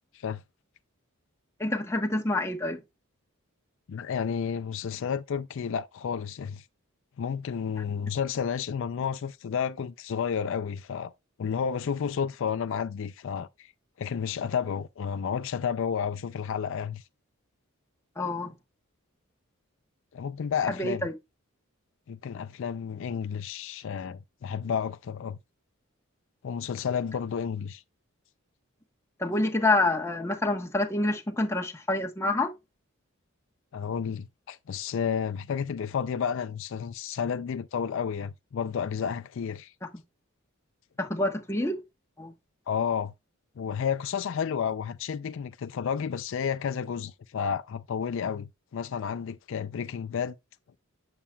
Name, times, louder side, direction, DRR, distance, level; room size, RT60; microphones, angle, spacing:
voice 1, 1.6-2.8 18.2-18.5 20.7-21.1 29.2-32.5 41.0-41.8 42.2-42.3, left 2 dB, 15° left, 1.1 m, -27 dB
voice 2, 3.9-6.7 7.2-11.1 11.4-13.7 14.0-17.0 20.1-21.1 22.1-25.4 26.4-27.8 33.7-39.7 42.7-43.1 43.6-50.3, left 7 dB, 60° left, 0.4 m, -31 dB
8.5 x 7.2 x 2.3 m
head